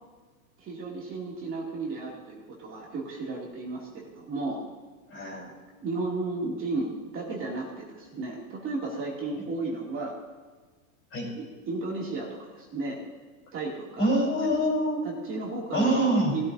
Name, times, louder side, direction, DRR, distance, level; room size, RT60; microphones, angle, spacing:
voice 1, 0.6-4.6 5.8-10.1 11.3-13.0 13.5-14.1 15.0-16.5, right 3 dB, 30° right, -3 dB, 2.8 m, -33 dB
voice 2, 5.1-5.5 11.1-11.3 14.0-15.0 15.7-16.3, right 1 dB, 30° left, -2 dB, 4.4 m, -25 dB
18.5 x 13.0 x 2.8 m, 1.4 s
hypercardioid pair, 125°, 43 cm